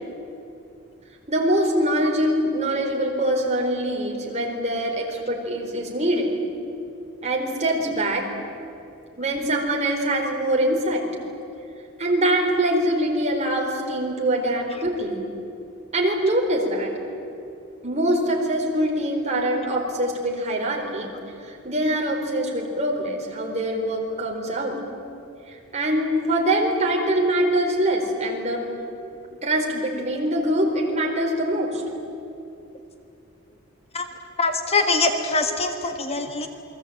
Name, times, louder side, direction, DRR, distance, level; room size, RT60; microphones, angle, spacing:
voice 1, 1.3-6.3 7.2-8.2 9.2-11.0 12.0-15.2 15.9-16.9 17.8-24.8 25.5-28.7 29.4-31.8, right 1 dB, 30° right, 0 dB, 4.4 m, -24 dB
voice 2, 34.4-36.5, left 3 dB, 30° left, 6 dB, 1.5 m, -23 dB
28.5 x 22.0 x 8.9 m, 2.8 s
head